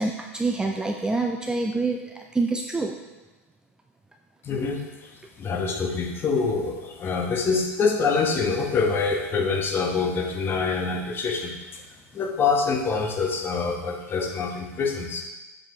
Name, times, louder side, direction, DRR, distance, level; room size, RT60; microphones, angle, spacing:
voice 1, 0.0-3.0, right 3 dB, 10° right, 3 dB, 0.4 m, -26 dB
voice 2, 4.4-5.1 5.4-11.8 12.1-15.2, left 4 dB, 25° left, 3 dB, 1.1 m, -25 dB
7.1 x 5.5 x 3.1 m, 1.1 s
hypercardioid pair, 90°, 8 cm